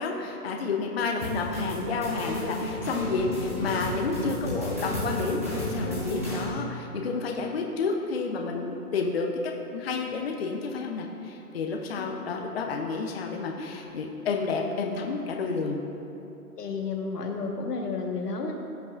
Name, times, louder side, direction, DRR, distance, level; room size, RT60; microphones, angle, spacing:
voice 1, 0.0-9.3 9.7-15.8, left 4 dB, 40° left, 1 dB, 0.6 m, -30 dB
sound 1, 1.2-6.5, left 1 dB, 10° right, 0.5 m, -32 dB
voice 2, 16.6-18.5, left 4 dB, 90° left, 2 dB, 1.4 m, -31 dB
15.5 x 5.8 x 2.4 m, 2.9 s
hypercardioid pair, 160°, 46 cm